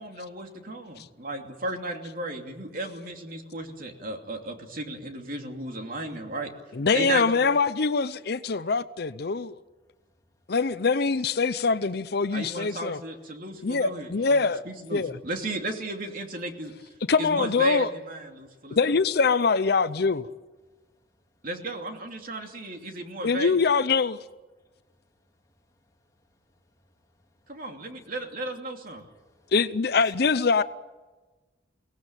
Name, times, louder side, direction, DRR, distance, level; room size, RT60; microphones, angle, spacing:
voice 1, 0.0-6.5 6.9-7.5 12.3-16.9 17.2-18.9 21.4-23.6 27.5-29.1, right 1 dB, 55° right, 2.8 m, -34 dB
voice 2, 6.8-9.6 10.5-13.0 13.6-14.6 14.9-15.1 17.1-17.9 18.8-20.3 23.2-24.2 29.5-30.6, left 4 dB, 65° left, 0.7 m, -24 dB
voice 3, 24.6-27.6 29.0-29.5 30.0-30.1, left 4 dB, 20° left, 3.2 m, -61 dB
23.5 x 18.0 x 9.0 m
head